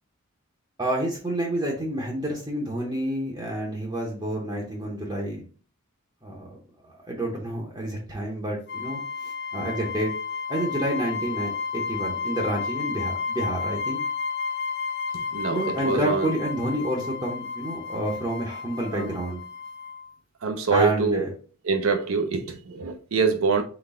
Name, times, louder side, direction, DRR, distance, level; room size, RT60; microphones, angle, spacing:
voice 1, 0.8-5.5 6.2-6.6 6.8-10.1 10.5-14.0 15.5-19.4 20.7-21.3, right 1 dB, 20° right, -2 dB, 0.7 m, -29 dB
sound 1, 8.7-20.1, left 5 dB, 50° left, 0.4 m, -32 dB
voice 2, 15.3-16.2 18.9-19.1 20.4-21.2 21.7-23.6, right 5 dB, 70° right, 5 dB, 0.6 m, -24 dB
3.9 x 3.2 x 3.6 m, 0.41 s
head